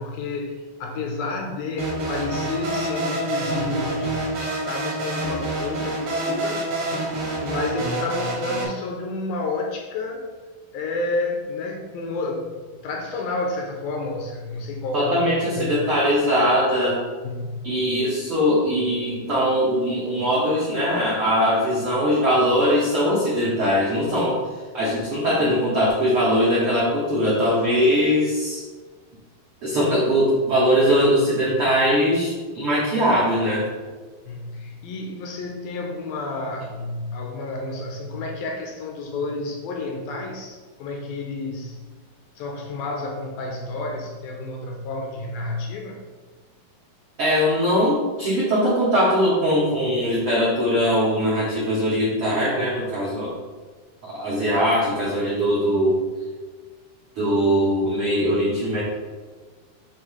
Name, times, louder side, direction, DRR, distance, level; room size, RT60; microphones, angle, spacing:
voice 1, 0.0-6.6 7.4-10.3 10.7-12.5 12.8-15.8 17.2-17.7 34.3-41.8 42.4-46.0, left 3 dB, 80° left, 1 dB, 2.2 m, -30 dB
sound 1, 1.8-8.6, right 2 dB, 60° right, 1.4 m, -27 dB
voice 2, 14.9-17.0 17.6-24.4 24.7-28.6 29.6-33.7 47.2-53.3 54.0-56.0 57.1-58.8, equal, 75° right, -7 dB, 1.2 m, -21 dB
7.6 x 2.8 x 4.9 m, 1.4 s
omnidirectional pair, 4.4 m